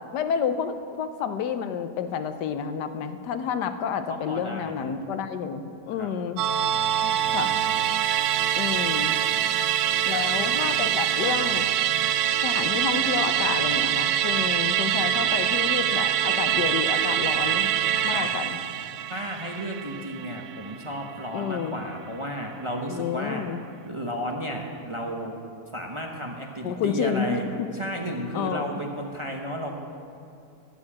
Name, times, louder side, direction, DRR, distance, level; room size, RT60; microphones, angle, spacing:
voice 1, 0.1-6.4 7.3-7.5 8.6-9.2 10.1-11.7 12.4-17.8 18.0-18.6 21.3-21.8 22.9-23.6 26.6-27.7 28.3-28.6, left 7 dB, 85° left, 10 dB, 1.3 m, -29 dB
voice 2, 4.1-4.9 6.0-6.1 7.0-7.8 10.1-10.2 18.1-18.4 19.1-23.4 23.9-25.4 25.7-27.4 27.7-29.7, equal, 25° right, 1 dB, 0.8 m, -33 dB
Musical instrument, 6.4-21.0 21.4-21.5, right 11 dB, 70° right, 1.1 m, -24 dB
12.0 x 7.7 x 8.5 m, 2.6 s
omnidirectional pair, 1.7 m